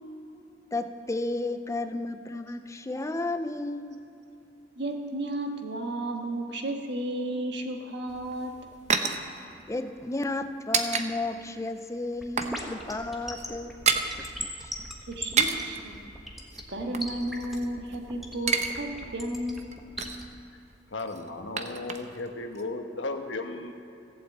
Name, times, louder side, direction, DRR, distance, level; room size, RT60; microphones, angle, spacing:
voice 1, 0.7-4.0 9.7-13.8 14.2-14.7, left 2 dB, 15° left, 9 dB, 0.5 m, -33 dB
voice 2, 4.7-8.5 15.1-16.0 16.7-19.7, right 1 dB, 65° right, 3 dB, 1.6 m, -33 dB
sound 1, 8.1-11.1 11.4-11.5 11.9-12.6 12.9-13.0 13.3-14.1 15.1-15.8 16.5-18.0 18.3-18.7 19.0-19.1 19.5-20.3 21.0-22.3 22.5-22.6, right 5 dB, 40° right, 0.8 m, -30 dB
sound 2, 12.2-20.2, equal, ahead, 1.3 m, -38 dB
voice 3, 20.9-23.7, left 2 dB, 75° left, 5 dB, 1.3 m, -35 dB
15.0 x 7.9 x 8.1 m, 2.9 s
head